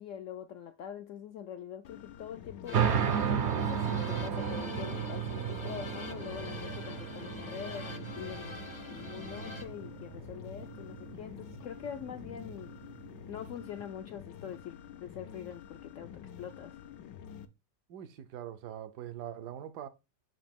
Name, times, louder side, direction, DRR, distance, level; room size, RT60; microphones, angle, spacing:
voice 1, 0.0-2.9 3.5-12.7 13.3-16.8, left 9 dB, 70° left, 0.7 m, -44 dB
sound 1, 1.8-17.5, left 8 dB, 90° left, 1.3 m, -49 dB
sound 2, 2.7-9.6, left 3 dB, 35° left, 0.4 m, -45 dB
sound 3, 2.7-13.8, right 7 dB, 60° right, 0.7 m, -34 dB
voice 2, 17.9-19.9, right 10 dB, 75° right, 1.3 m, -42 dB
7.4 x 2.8 x 5.2 m
omnidirectional pair, 1.8 m